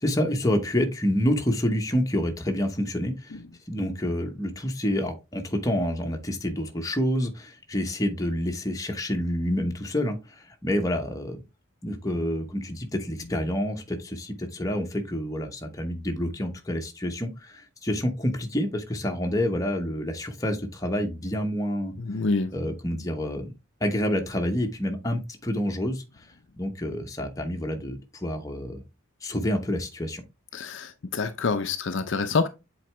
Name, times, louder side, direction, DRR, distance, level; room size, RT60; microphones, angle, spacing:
voice 1, 0.0-3.4 3.7-11.4 11.8-21.9 22.5-23.5 23.8-26.0 26.6-28.8 29.2-30.2, equal, 15° left, 0.9 m, -28 dB
voice 2, 22.0-22.5 30.5-32.5, left 4 dB, 55° left, 0.5 m, -27 dB
7.7 x 4.0 x 3.3 m
head